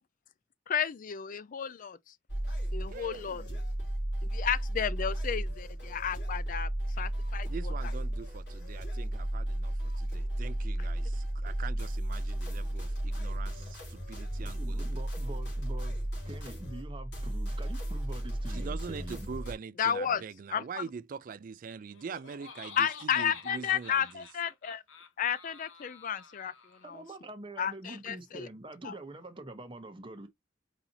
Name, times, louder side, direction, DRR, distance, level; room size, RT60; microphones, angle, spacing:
voice 1, 0.7-2.1 2.7-3.4 4.2-6.7 7.0-7.7 19.8-20.2 20.5-20.6 22.8-24.8 25.2-26.5 26.9-27.0 27.6-28.5 28.8-28.9, left 8 dB, 45° left, 0.4 m, -32 dB
sound 1, 2.3-19.5, right 1 dB, 60° left, 2.7 m, -34 dB
voice 2, 2.9-3.6 7.4-14.9 18.5-24.3, right 6 dB, 45° right, 0.3 m, -43 dB
voice 3, 14.4-16.0 16.2-19.3 26.8-30.3, right 2 dB, 25° right, 0.8 m, -45 dB
Laughter, 21.8-27.0, left 6 dB, 75° left, 1.1 m, -50 dB
4.1 x 4.1 x 2.6 m
head